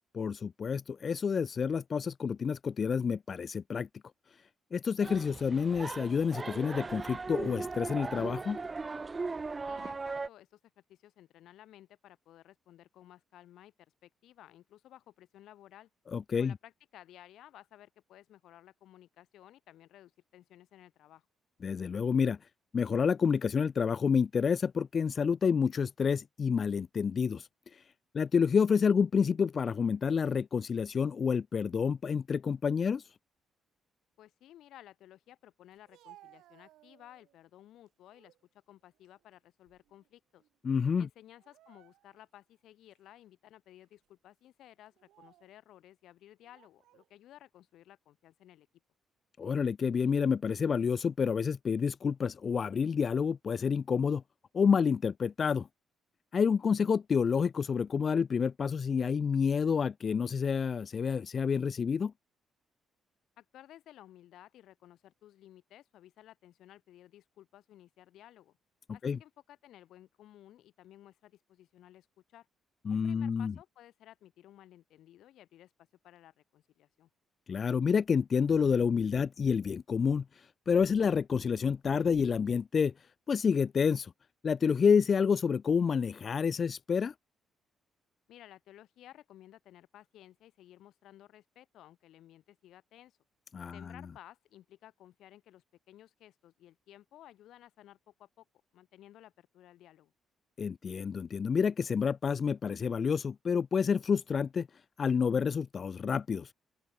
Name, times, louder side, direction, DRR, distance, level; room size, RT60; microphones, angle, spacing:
voice 1, 0.1-3.9 4.7-8.6 16.1-16.5 21.6-22.4 22.7-27.8 28.1-33.1 40.6-41.1 49.4-54.2 54.5-55.7 56.3-62.1 69.0-69.2 72.9-73.5 77.5-84.1 84.4-87.1 93.5-93.9 100.6-104.7 105.0-106.5, left 6 dB, 45° left, 0.4 m, -29 dB
sound 1, 5.0-10.3, right 4 dB, 30° right, 2.0 m, -38 dB
voice 2, 9.7-15.9 16.4-21.3 34.2-38.4 38.7-40.4 41.0-48.7 63.4-68.6 68.9-72.5 72.9-77.1 88.3-93.2 93.7-98.5 98.7-100.1, left 13 dB, 80° left, 7.5 m, -56 dB
Speech, 35.7-37.4 37.9-38.4 38.9-40.1 40.4-40.6 41.4-42.3 42.9-43.0 43.8-44.1 44.9-45.6 46.4-47.1, right 15 dB, 90° right, 4.6 m, -61 dB
open air
cardioid pair, 90°, 0 cm